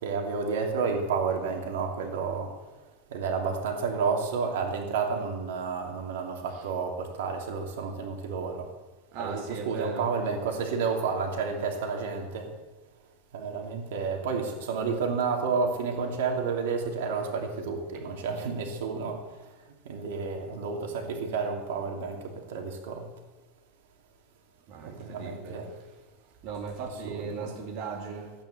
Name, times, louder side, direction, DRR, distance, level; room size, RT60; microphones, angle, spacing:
voice 1, 0.0-2.5 3.1-8.7 9.2-12.5 13.3-19.6 19.8-23.0 24.8-25.7 27.0-27.6, right 5 dB, 90° right, 2 dB, 2.7 m, -31 dB
voice 2, 9.1-10.2 17.9-18.0 24.7-25.7 26.4-28.3, right 5 dB, 45° right, 1 dB, 2.3 m, -38 dB
14.5 x 9.3 x 7.7 m, 1.2 s
supercardioid pair, 170°, 0 cm